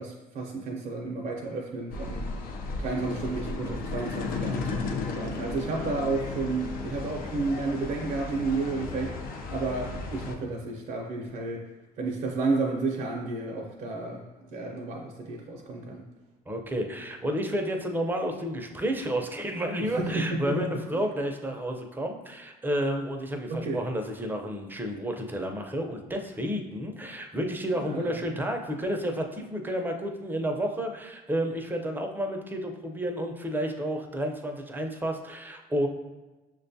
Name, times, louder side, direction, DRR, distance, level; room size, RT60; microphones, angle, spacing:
voice 1, 0.0-2.3 2.8-11.7 12.0-16.0 19.8-21.0 23.5-23.8 27.7-28.2, right 3 dB, 55° right, -1 dB, 0.6 m, -32 dB
sound 1, 1.9-10.4, left 3 dB, 60° left, 0.5 m, -35 dB
voice 2, 16.5-35.9, equal, 10° right, 3 dB, 0.5 m, -31 dB
6.1 x 2.2 x 2.6 m, 1.2 s
supercardioid pair, 85°, 17 cm